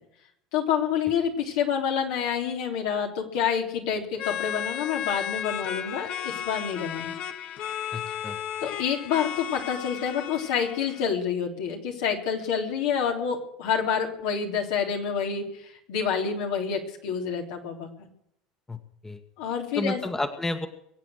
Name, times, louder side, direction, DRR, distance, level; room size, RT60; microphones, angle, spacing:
voice 1, 0.5-7.1 8.6-18.1 19.4-20.0, left 7 dB, 70° left, 2 dB, 3.5 m, -28 dB
sound 1, 4.2-11.0, left 9 dB, 55° left, 1.2 m, -34 dB
voice 2, 7.9-8.4 18.7-19.2 19.8-20.7, left 2 dB, 15° left, 8 dB, 1.7 m, -31 dB
23.0 x 9.0 x 6.5 m, 0.73 s
hypercardioid pair, 75°, 3 cm